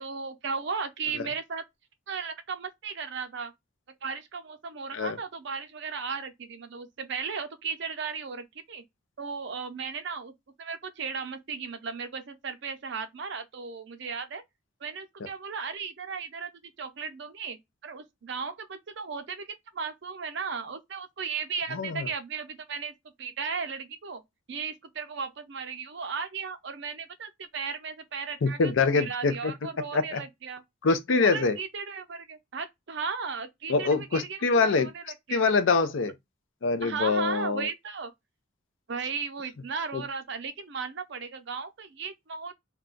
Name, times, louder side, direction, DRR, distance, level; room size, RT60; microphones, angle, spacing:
voice 1, 0.0-1.6 2.1-3.5 4.0-8.8 9.2-10.3 10.6-14.4 14.8-17.6 17.8-22.9 23.2-24.2 24.5-30.6 31.2-35.4 36.8-38.1 38.9-42.5, right 5 dB, 65° right, 0.5 m, -36 dB
voice 2, 21.7-22.1 28.4-29.5 29.9-30.2 30.8-31.6 33.7-34.9 35.3-36.1 36.6-37.7 39.9-40.0, left 4 dB, 75° left, 0.5 m, -24 dB
2.3 x 2.2 x 3.7 m
head